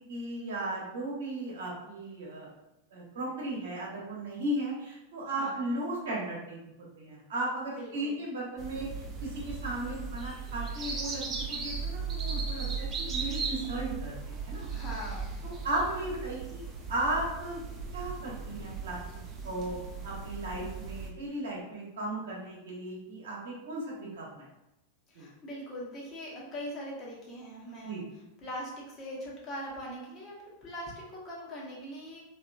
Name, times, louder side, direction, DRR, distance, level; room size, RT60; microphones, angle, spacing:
voice 1, 0.0-2.5 2.9-6.6 7.0-11.2 11.5-14.7 15.4-16.6 16.9-17.6 17.9-19.0 19.4-19.7 20.0-24.5 25.1-25.3 27.8-28.0, right 1 dB, 60° right, -4 dB, 1.0 m, -35 dB
voice 2, 5.3-5.6 7.7-8.1 14.7-15.3 25.1-28.0 28.4-32.2, equal, 30° left, -5 dB, 1.0 m, -41 dB
sound 1, 8.6-21.1, right 5 dB, 25° right, 0.5 m, -37 dB
2.9 x 2.7 x 2.3 m, 0.89 s
figure-of-eight pair, 90°, 0 cm